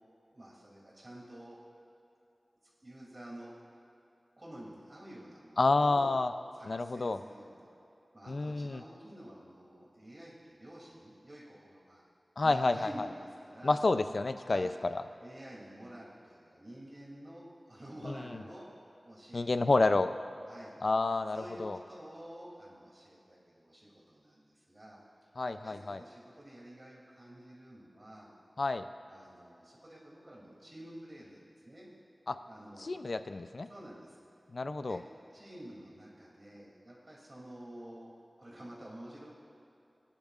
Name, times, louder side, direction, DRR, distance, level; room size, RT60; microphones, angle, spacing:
voice 1, 0.3-1.6 2.8-3.5 4.4-6.1 6.5-7.7 8.1-12.0 12.4-13.8 14.5-14.7 15.2-18.7 19.0-19.6 20.5-20.7 21.3-25.0 25.4-28.3 29.1-31.9 32.5-32.9 33.7-34.3 34.8-35.0 35.3-38.1 38.4-39.3, right 1 dB, 35° right, -5 dB, 2.8 m, -50 dB
voice 2, 5.6-6.3 6.7-7.2 8.3-8.8 12.4-12.9 13.6-15.0 19.3-20.1 20.8-21.8 25.4-26.0 28.6-28.8 32.3-32.4 32.8-33.7 34.5-35.0, left 3 dB, 65° left, 10 dB, 0.4 m, -29 dB
19.5 x 10.5 x 2.5 m, 2.8 s
wide cardioid pair, 70°, 0 cm